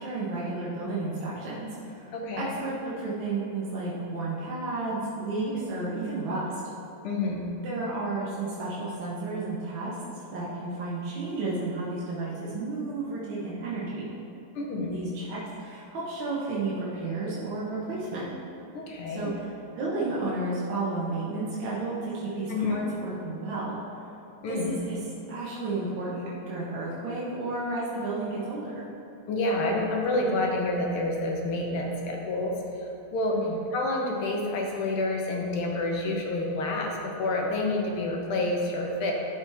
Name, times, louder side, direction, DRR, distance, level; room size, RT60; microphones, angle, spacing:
voice 1, 0.0-2.1 2.4-6.6 7.6-14.1 14.9-18.3 19.1-23.8 24.5-25.0 25.3-28.9 33.3-33.6, right 2 dB, 65° right, -8 dB, 1.9 m, -32 dB
voice 2, 2.1-2.5 5.5-5.6 7.0-7.5 14.6-15.0 18.7-19.3 22.5-22.9 24.4-24.8 29.3-33.4 33.7-39.1, left 2 dB, 80° left, 0 dB, 1.9 m, -28 dB
11.5 x 5.0 x 3.5 m, 2.9 s
omnidirectional pair, 2.4 m